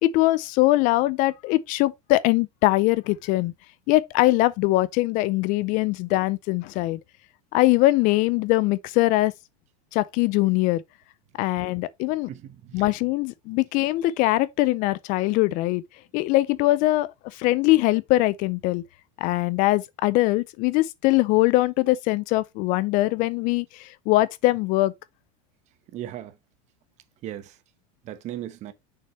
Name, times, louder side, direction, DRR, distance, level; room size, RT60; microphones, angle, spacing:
voice 1, 0.0-3.5 3.9-7.0 7.5-9.3 9.9-10.8 11.4-12.3 12.7-15.8 16.1-18.8 19.2-24.9, left 18 dB, 45° left, 0.4 m, -22 dB
voice 2, 12.3-12.9 25.9-26.3 27.2-27.5 28.0-28.7, right 12 dB, 40° right, 1.0 m, -36 dB
6.8 x 5.7 x 3.1 m
supercardioid pair, 140°, 19 cm